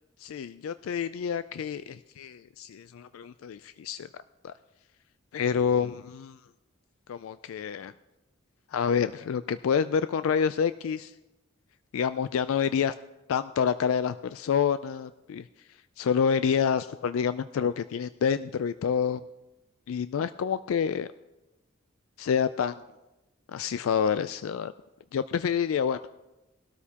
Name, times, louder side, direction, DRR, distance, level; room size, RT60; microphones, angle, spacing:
voice 1, 0.2-4.1 4.4-4.5 5.3-6.4 7.1-7.9 8.7-11.1 11.9-12.9 13.3-15.5 16.0-19.2 19.9-21.1 22.2-22.8 23.5-24.7 25.1-26.0, left 7 dB, 85° left, 13 dB, 0.3 m, -28 dB
19.5 x 12.5 x 2.9 m, 1.0 s
head